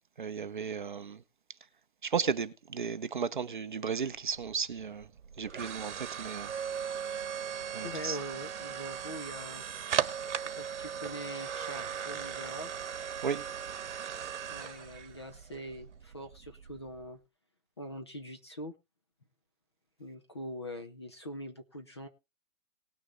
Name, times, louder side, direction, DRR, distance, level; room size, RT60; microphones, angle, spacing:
voice 1, 0.2-1.2 2.0-5.1 5.4-6.5 7.7-8.2 13.2-13.5, right 6 dB, 35° right, 0.7 m, -34 dB
sound 1, 4.0-17.1, right 8 dB, 55° right, 1.4 m, -38 dB
voice 2, 7.8-9.6 10.6-12.7 14.5-17.2 17.8-18.7 20.0-22.1, equal, 20° left, 0.6 m, -43 dB
19.5 x 6.5 x 3.8 m
hypercardioid pair, 175°, 41 cm